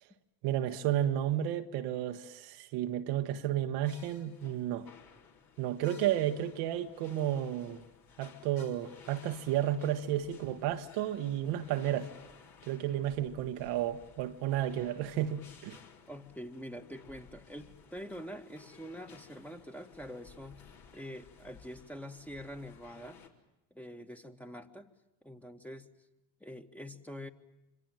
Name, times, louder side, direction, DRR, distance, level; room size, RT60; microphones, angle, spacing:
voice 1, 0.4-4.9 5.6-7.8 8.2-12.1 12.7-15.8, right 11 dB, 65° right, 1.5 m, -32 dB
sound 1, 3.8-23.3, left 6 dB, 50° left, 3.9 m, -57 dB
voice 2, 16.1-20.7 20.9-23.2 23.7-24.9 25.2-25.9 26.4-27.3, equal, 5° left, 1.9 m, -45 dB
26.0 x 24.0 x 9.0 m
hypercardioid pair, 70°, 44 cm